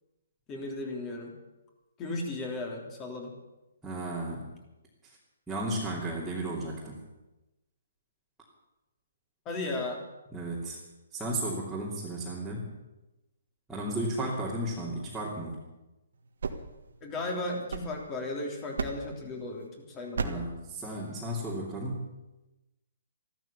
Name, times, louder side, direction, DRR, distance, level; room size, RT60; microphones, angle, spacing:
voice 1, 0.5-1.3 2.0-3.3 9.5-10.0 17.0-20.4, left 2 dB, 20° left, 1 dB, 3.4 m, -35 dB
voice 2, 3.8-4.5 5.5-7.0 10.3-10.8 11.1-12.7 13.7-15.6 20.2-22.1, right 1 dB, 5° right, -8 dB, 2.9 m, -34 dB
sound 1, 16.1-18.3 18.8-19.3 20.1-20.6, right 4 dB, 75° right, 1.7 m, -36 dB
14.0 x 13.5 x 7.0 m, 1.0 s
hypercardioid pair, 150°, 0 cm